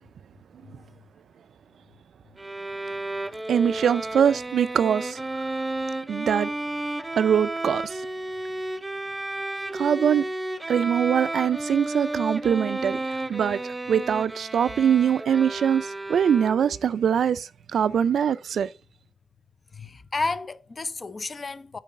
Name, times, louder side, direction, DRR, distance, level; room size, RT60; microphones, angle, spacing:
Bowed string instrument, 2.4-16.9, right 2 dB, 15° right, 0.5 m, -32 dB
voice 1, 3.5-5.4 6.1-6.5 7.2-8.0 9.7-10.3 10.7-18.7, right 8 dB, 75° right, 0.4 m, -23 dB
voice 2, 19.7-21.8, left 3 dB, 35° left, 0.6 m, -31 dB
9.2 x 3.9 x 5.4 m
cardioid pair, 90°, 0 cm